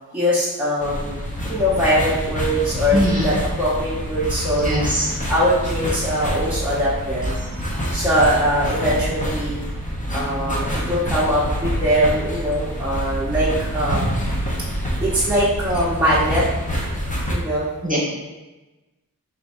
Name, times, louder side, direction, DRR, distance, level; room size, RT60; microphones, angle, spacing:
voice 1, 0.1-1.2 1.5-4.7 5.3-7.4 7.9-9.6 10.1-14.1 15.0-16.4 17.3-17.7, equal, 5° right, -9 dB, 1.0 m, -21 dB
sound 1, 0.8-17.3, equal, 20° left, 0.8 m, -26 dB
voice 2, 2.9-3.3 4.6-5.0 17.8-18.0, equal, 25° right, -5 dB, 1.3 m, -21 dB
5.1 x 3.3 x 2.6 m, 1.1 s
wide cardioid pair, 60°, 35 cm